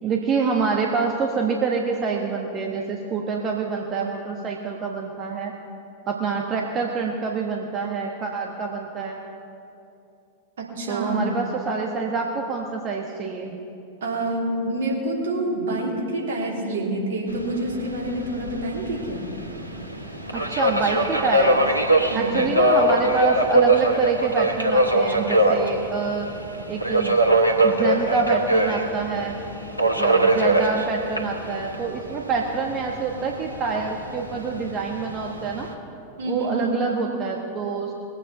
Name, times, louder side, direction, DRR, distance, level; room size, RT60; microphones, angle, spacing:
voice 1, 0.0-5.5 6.1-9.2 10.9-13.6 20.3-21.6 22.1-26.3 26.7-27.2 27.6-29.4 30.0-35.7 36.3-37.9, right 5 dB, 30° right, 1 dB, 1.2 m, -26 dB
voice 2, 10.8-11.3 14.0-19.3 22.1-22.4 36.2-36.8, right 1 dB, 60° right, -2 dB, 3.1 m, -27 dB
Subway metro underground, 17.3-35.7, right 1 dB, 90° left, 1.3 m, -23 dB
21.0 x 8.4 x 5.7 m, 2.7 s
figure-of-eight pair, 90°, 0 cm